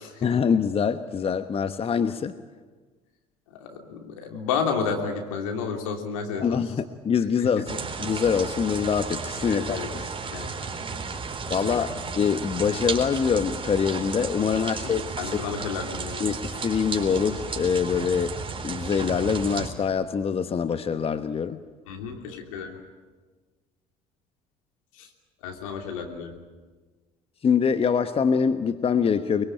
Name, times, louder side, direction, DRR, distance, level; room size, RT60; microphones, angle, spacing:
voice 1, 0.2-2.4 6.4-10.1 11.5-15.4 16.2-18.4 18.6-21.6 27.4-29.4, left 6 dB, 35° left, 11 dB, 1.1 m, -24 dB
voice 2, 3.6-6.4 9.5-9.9 10.3-10.5 11.7-11.8 14.8-16.2 21.9-22.8 25.4-26.3, left 6 dB, 80° left, 3 dB, 3.1 m, -31 dB
sound 1, 7.7-19.7, right 4 dB, 30° right, 4.0 m, -33 dB
23.0 x 23.0 x 8.8 m, 1.4 s
hypercardioid pair, 60°, 17 cm